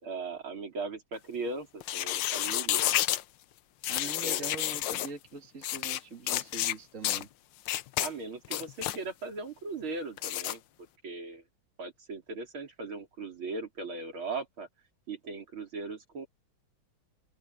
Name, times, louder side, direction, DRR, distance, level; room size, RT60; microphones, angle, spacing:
voice 1, 0.0-2.9 3.9-4.6 8.0-10.6 11.0-11.4 11.8-14.7 15.1-16.3, right 3 dB, 75° right, 4.4 m, -38 dB
sound 1, 1.8-3.2 3.8-5.1 5.6-6.0 6.3-6.7 7.0-7.2 7.7-8.1 8.4-9.0 10.2-10.5, left 14 dB, 70° left, 1.2 m, -30 dB
voice 2, 3.9-7.3, right 4 dB, 35° right, 2.7 m, -43 dB
open air
omnidirectional pair, 2.3 m